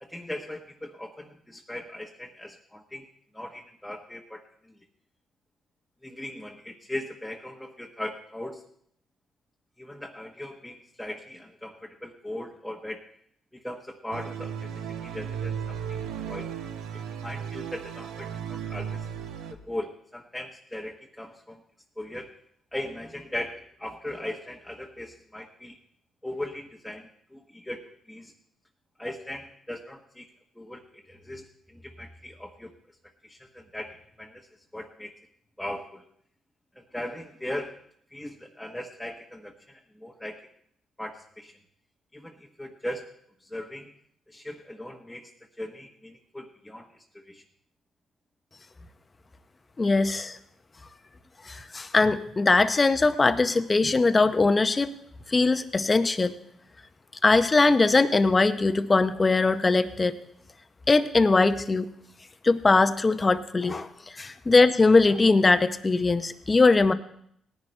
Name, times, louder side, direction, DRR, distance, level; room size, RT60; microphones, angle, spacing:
voice 1, 0.0-3.1 3.3-4.8 6.0-8.6 9.8-13.0 13.5-16.0 16.3-16.5 17.1-19.1 19.5-21.6 22.0-22.3 22.7-25.7 26.2-28.3 29.0-30.3 30.5-32.7 33.2-34.5 34.7-35.1 35.6-36.1 36.7-37.7 38.1-40.4 41.0-41.5 42.1-43.1 43.4-43.9 44.3-45.3 45.6-47.4, left 1 dB, 5° left, -1 dB, 1.1 m, -39 dB
sound 1, 14.1-19.5, right 8 dB, 90° right, 0.9 m, -35 dB
voice 2, 49.8-50.4 51.5-54.9 55.3-56.3 57.2-60.1 60.9-61.9 62.4-63.9 64.2-66.9, left 3 dB, 25° left, 11 dB, 0.7 m, -21 dB
18.5 x 10.5 x 3.3 m, 0.68 s
cardioid pair, 90°, 0 cm